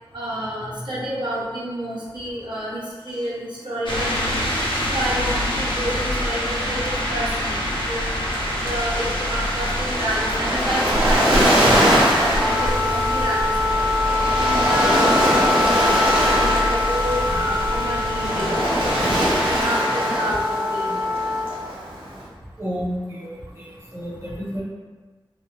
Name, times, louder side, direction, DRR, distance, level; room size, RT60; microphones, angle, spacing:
voice 1, 0.1-4.4 4.9-8.1 8.6-13.4 13.7-13.8 14.3-18.6 19.4-21.2, equal, 55° right, -7 dB, 0.8 m, -29 dB
sound 1, 3.9-19.7, equal, 65° left, 0.6 m, -26 dB
Waves surf, 9.8-22.2, equal, 90° right, 0.9 m, -22 dB
Wind instrument woodwind instrument, 12.3-21.5, left 3 dB, 5° right, 0.6 m, -24 dB
voice 2, 22.6-24.6, equal, 30° right, -6 dB, 1.0 m, -31 dB
3.3 x 2.0 x 2.7 m, 1.3 s
wide cardioid pair, 45°, 9 cm